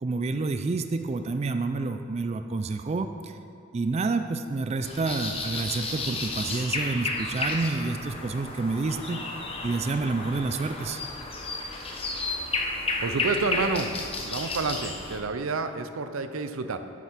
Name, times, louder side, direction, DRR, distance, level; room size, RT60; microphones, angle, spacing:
voice 1, 0.0-3.4 3.7-9.2 9.6-11.0, right 3 dB, 30° right, 8 dB, 0.3 m, -29 dB
sound 1, 4.8-15.2, left 3 dB, 30° left, 0.9 m, -32 dB
voice 2, 13.0-13.9 14.2-16.8, right 4 dB, 90° right, 9 dB, 0.6 m, -29 dB
8.0 x 7.2 x 5.9 m, 2.5 s
head